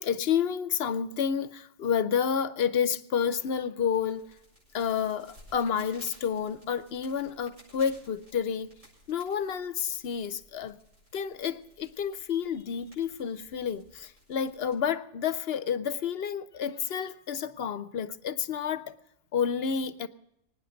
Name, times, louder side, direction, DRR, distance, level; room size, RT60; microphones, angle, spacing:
voice 1, 0.0-4.2 4.7-8.7 9.1-10.8 11.1-19.0 19.3-20.1, left 7 dB, 60° left, 0.9 m, -30 dB
sound 1, 3.9-14.8, equal, 75° right, 7.8 m, -58 dB
24.0 x 9.8 x 5.1 m
omnidirectional pair, 1.2 m